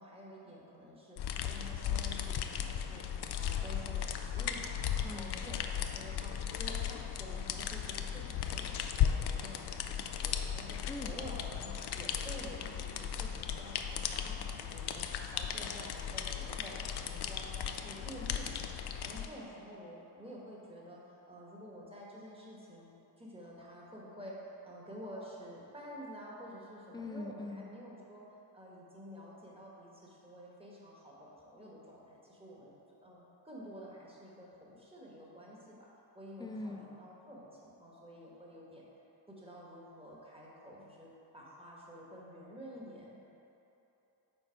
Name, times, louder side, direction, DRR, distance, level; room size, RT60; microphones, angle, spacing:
voice 1, 0.0-3.0 3.3-22.9 23.2-28.2 28.5-32.7 33.0-35.9 36.1-38.8 39.3-43.2, equal, 15° right, -4 dB, 1.4 m, -50 dB
sound 1, 1.2-19.3, left 9 dB, 65° left, 0.5 m, -36 dB
voice 2, 5.0-5.4 10.9-11.1 26.9-27.8 36.4-36.9, left 2 dB, 10° left, 5 dB, 0.3 m, -42 dB
6.7 x 4.1 x 4.6 m, 3.0 s
cardioid pair, 85°, 43 cm